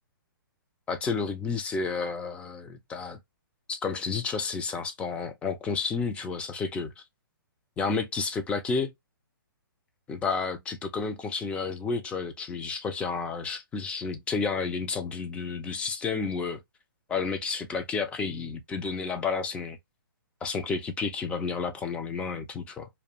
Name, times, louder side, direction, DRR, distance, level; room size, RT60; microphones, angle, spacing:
voice 1, 0.9-3.2 3.7-7.0 7.8-8.9 10.1-16.6 17.1-19.8 20.4-22.9, left 4 dB, 10° left, 0.4 m, -31 dB
2.4 x 2.1 x 2.7 m
hypercardioid pair, 140°, 12 cm